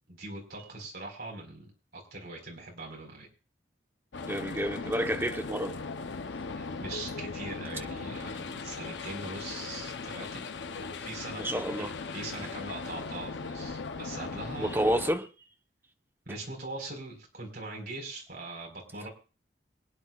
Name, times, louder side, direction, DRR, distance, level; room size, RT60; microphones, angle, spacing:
voice 1, 0.1-3.3 6.6-10.4 10.7-14.7 16.2-19.1, right 2 dB, 55° right, 4.5 m, -42 dB
sound 1, 4.1-15.1, left 4 dB, 85° left, 0.7 m, -38 dB
voice 2, 4.2-5.8 11.4-11.9 14.6-15.3, equal, 10° right, 1.0 m, -29 dB
25.0 x 9.9 x 2.4 m
head